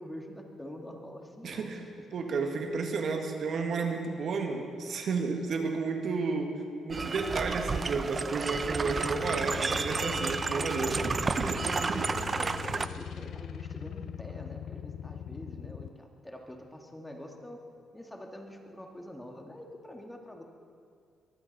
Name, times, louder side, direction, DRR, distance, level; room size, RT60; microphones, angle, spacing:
voice 1, 0.0-1.7 2.2-2.3 11.9-17.6 17.9-20.4, left 1 dB, 10° left, 2 dB, 2.0 m, -45 dB
voice 2, 1.4-1.8 2.1-6.6 6.8-12.1, right 4 dB, 60° right, 4 dB, 1.7 m, -32 dB
sound 1, 6.9-12.9, right 4 dB, 35° right, 0.6 m, -31 dB
sound 2, 9.0-15.9, left 9 dB, 65° left, 0.4 m, -41 dB
22.5 x 15.0 x 4.2 m, 2.3 s
cardioid pair, 90°, 0 cm